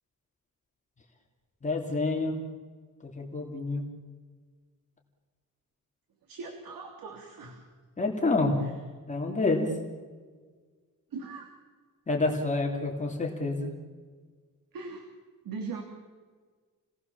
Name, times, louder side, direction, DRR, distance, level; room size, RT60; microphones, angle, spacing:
voice 1, 1.6-2.4 3.0-3.8 8.0-8.6 9.1-9.7 12.1-13.7, left 3 dB, 20° left, 0 dB, 3.0 m, -28 dB
voice 2, 6.3-7.6 8.6-8.7 11.1-11.5 14.7-15.1 15.4-15.8, right 4 dB, 85° right, 3 dB, 3.2 m, -39 dB
30.0 x 19.5 x 7.2 m, 1.5 s
wide cardioid pair, 170°, 33 cm